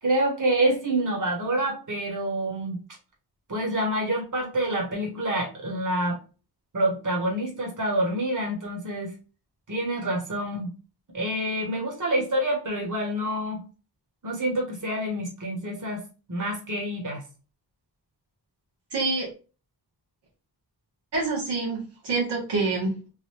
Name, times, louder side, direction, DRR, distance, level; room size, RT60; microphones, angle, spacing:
voice 1, 0.0-2.8 3.5-6.2 6.7-9.1 9.7-10.7 11.1-13.6 14.2-16.0 16.3-17.2, right 1 dB, 50° right, -1 dB, 1.7 m, -27 dB
voice 2, 18.9-19.3 21.1-23.1, right 3 dB, 90° right, -4 dB, 1.7 m, -27 dB
3.9 x 2.6 x 3.3 m, 0.34 s
cardioid pair, 70°, 40 cm